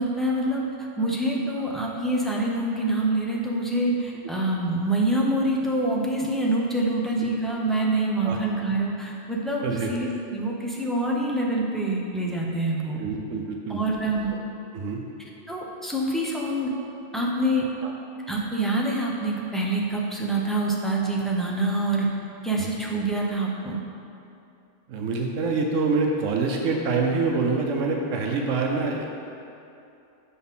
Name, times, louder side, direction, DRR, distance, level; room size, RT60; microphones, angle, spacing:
voice 1, 0.0-13.0 13.7-14.3 15.5-16.7 17.1-17.7 18.3-22.1 22.4-23.8, right 1 dB, ahead, -4 dB, 0.5 m, -26 dB
voice 2, 13.0-13.8 14.7-15.0 17.8-17.9 22.6-22.7 24.9-29.1, right 4 dB, 85° right, 1 dB, 1.0 m, -26 dB
6.7 x 4.2 x 5.5 m, 2.7 s
omnidirectional pair, 1.3 m